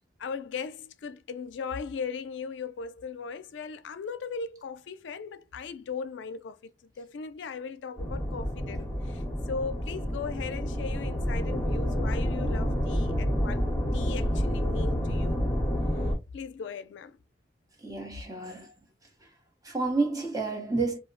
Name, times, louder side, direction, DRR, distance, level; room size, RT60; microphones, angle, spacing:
voice 1, 0.2-6.6 7.0-9.2 9.5-13.7 13.9-15.4 16.3-17.2, left 5 dB, 85° left, 0.4 m, -38 dB
sound 1, 8.0-16.1, equal, 10° left, 0.8 m, -29 dB
voice 2, 17.8-18.7 19.6-21.0, right 3 dB, 20° right, 0.7 m, -30 dB
2.3 x 2.0 x 3.7 m
head